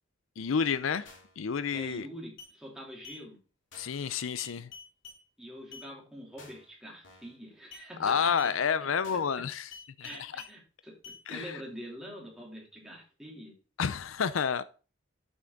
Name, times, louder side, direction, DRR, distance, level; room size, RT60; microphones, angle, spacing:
voice 1, 0.4-1.1 1.4-2.1 3.8-4.7 8.0-9.7 10.0-10.3 11.3-11.6 13.8-14.6, left 6 dB, 85° left, 0.5 m, -30 dB
sound 1, 1.1-1.4 1.7-2.0 2.4-2.5 3.0-3.2 3.7-4.0 4.4-5.2 5.7-5.9 6.4-6.7 7.0-7.4 7.7-7.9 8.4-8.5 9.0-9.4 9.7-10.5 11.0-11.2, left 5 dB, 65° left, 3.0 m, -49 dB
voice 2, 1.7-3.4 5.4-8.4 9.1-9.2 10.0-13.5, equal, 5° right, 3.1 m, -45 dB
8.1 x 6.0 x 3.9 m
head